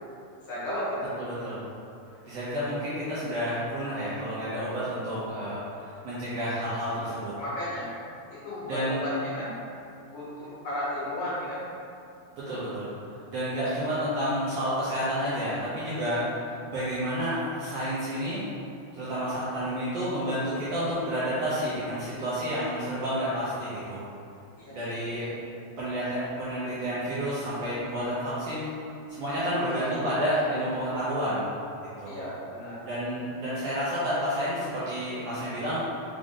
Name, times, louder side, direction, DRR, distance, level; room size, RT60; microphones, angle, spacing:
voice 1, 0.5-1.1 7.0-7.9 8.3-9.5 10.1-11.7 24.6-25.3 29.8-30.0 32.1-32.8, left 1 dB, 65° left, -9 dB, 1.8 m, -34 dB
voice 2, 1.2-1.6 2.2-7.3 8.6-9.1 12.3-18.5 18.9-24.0 24.7-25.3 25.8-28.7 29.2-31.4 32.0-32.2 32.8-35.8, equal, 75° right, -10 dB, 1.5 m, -30 dB
5.0 x 2.4 x 3.6 m, 2.6 s
omnidirectional pair, 3.5 m